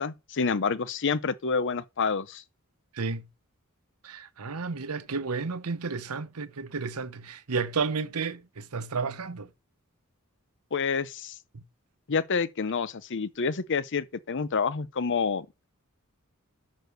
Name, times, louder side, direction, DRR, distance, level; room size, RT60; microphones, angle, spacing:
voice 1, 0.0-2.4 10.7-11.3 12.1-15.7, left 5 dB, 55° left, 0.7 m, -28 dB
voice 2, 2.9-3.3 4.0-9.5 11.5-11.6, right 4 dB, 85° right, 0.9 m, -32 dB
6.4 x 6.2 x 6.8 m
head